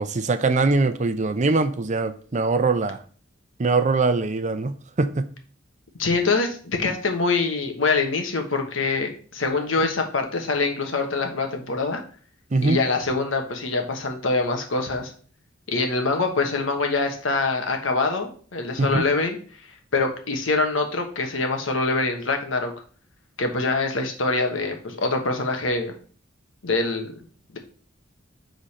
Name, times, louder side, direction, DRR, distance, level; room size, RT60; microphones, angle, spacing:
voice 1, 0.0-3.0 3.6-5.3 12.5-12.8 18.8-19.0, right 3 dB, 40° right, 0.6 m, -22 dB
voice 2, 6.0-12.0 12.6-15.1 15.7-19.4 19.9-22.7 23.4-25.9 26.6-27.2, left 3 dB, 85° left, 1.3 m, -24 dB
6.6 x 3.9 x 4.3 m
head